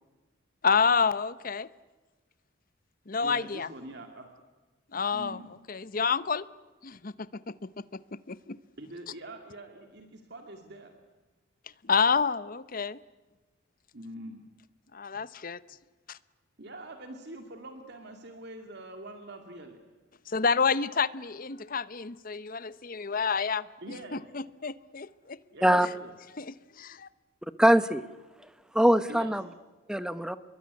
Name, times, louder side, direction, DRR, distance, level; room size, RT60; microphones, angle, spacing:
voice 1, 0.6-1.7 3.1-3.7 4.9-5.4 5.7-6.4 6.8-7.1 7.5-7.6 8.3-8.6 11.8-13.0 14.9-15.6 16.1-16.2 20.3-23.6 24.3-25.4 26.3-27.1, left 5 dB, 45° left, 16 dB, 0.8 m, -28 dB
voice 2, 3.2-4.3 5.1-5.5 8.8-10.9 13.9-14.4 16.6-19.8 23.8-24.3 25.5-26.1 29.1-29.4, right 1 dB, 55° right, 5 dB, 2.3 m, -44 dB
voice 3, 27.6-28.1 28.7-29.5 29.9-30.4, equal, 5° right, 13 dB, 0.9 m, -22 dB
27.5 x 22.5 x 9.7 m, 1.2 s
head